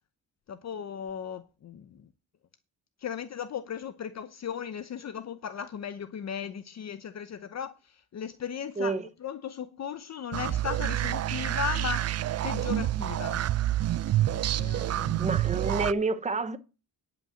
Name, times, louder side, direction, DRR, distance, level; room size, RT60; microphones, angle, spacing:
voice 1, 0.5-2.1 3.0-8.9 9.2-12.1 12.4-13.4 14.5-15.2, left 7 dB, 50° left, 0.8 m, -36 dB
voice 2, 8.8-9.1 15.2-16.6, right 3 dB, 20° right, 1.0 m, -29 dB
sound 1, 10.3-15.9, right 13 dB, 45° right, 0.5 m, -28 dB
10.5 x 5.4 x 7.7 m
cardioid pair, 120°, 35 cm